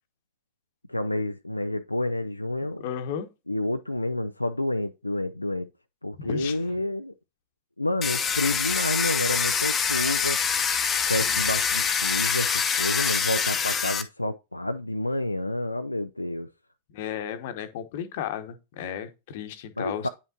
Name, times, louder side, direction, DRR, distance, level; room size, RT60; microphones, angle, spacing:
voice 1, 0.9-2.8 3.5-5.7 6.0-7.1 7.8-10.4 11.0-16.5 19.8-20.1, left 1 dB, 85° left, 0.3 m, -29 dB
voice 2, 2.8-3.3 6.2-6.7 11.2-11.4 16.9-20.1, left 9 dB, 50° left, 1.0 m, -34 dB
Domestic sounds home sounds, 8.0-14.0, left 6 dB, 20° left, 0.8 m, -25 dB
9.2 x 5.6 x 2.8 m
figure-of-eight pair, 90°, 0 cm